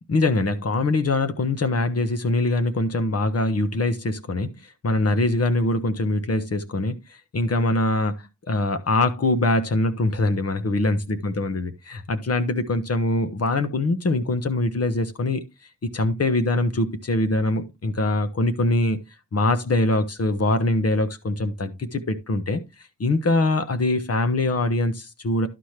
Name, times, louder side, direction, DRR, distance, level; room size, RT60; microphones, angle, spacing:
voice 1, 0.1-4.5 4.8-7.0 7.3-8.2 8.5-15.4 15.8-19.0 19.3-22.6 23.0-25.5, left 2 dB, 50° left, 1.2 m, -23 dB
11.5 x 5.9 x 3.3 m
wide cardioid pair, 125°, 31 cm